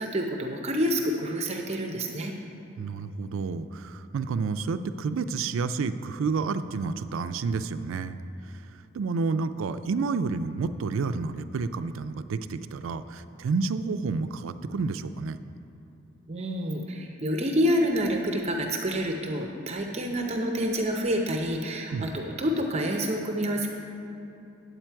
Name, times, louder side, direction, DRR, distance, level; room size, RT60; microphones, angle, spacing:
voice 1, 0.0-2.3 16.3-23.7, equal, 35° right, 2 dB, 0.6 m, -28 dB
voice 2, 2.8-8.2 8.4-15.4 21.9-22.2, right 4 dB, 80° right, 12 dB, 0.4 m, -30 dB
8.8 x 8.2 x 4.5 m, 2.9 s
head